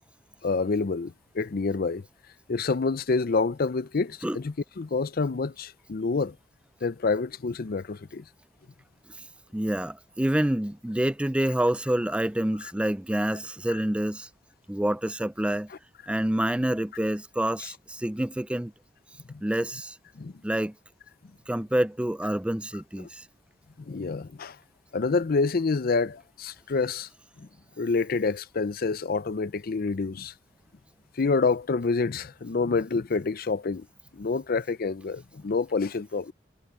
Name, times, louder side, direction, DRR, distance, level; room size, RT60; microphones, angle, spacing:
voice 1, 0.4-2.1 2.5-6.4 6.8-8.3 12.6-12.7 13.7-13.8 17.6-17.7 19.3-19.4 20.2-20.3 23.0-23.1 23.8-24.6 24.9-27.1 27.4-27.5 27.8-30.3 31.1-33.9 34.1-36.3, left 4 dB, 50° left, 0.5 m, -27 dB
voice 2, 9.5-14.3 14.7-15.7 16.1-18.7 19.4-20.0 20.4-20.7 21.5-23.3, right 1 dB, 5° right, 0.4 m, -27 dB
head